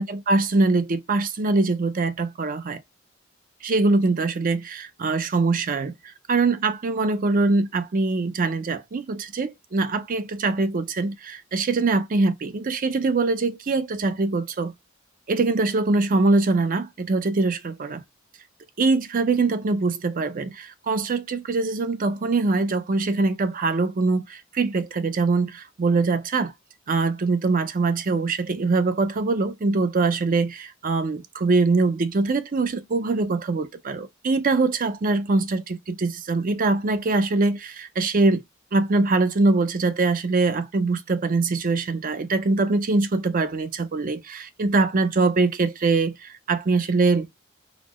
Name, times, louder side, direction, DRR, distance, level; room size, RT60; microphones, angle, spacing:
voice 1, 0.0-2.8 3.6-5.9 6.3-14.7 15.3-18.0 18.8-26.5 26.9-38.4 38.7-47.3, right 3 dB, 45° right, 0.5 m, -23 dB
4.0 x 2.1 x 2.9 m
head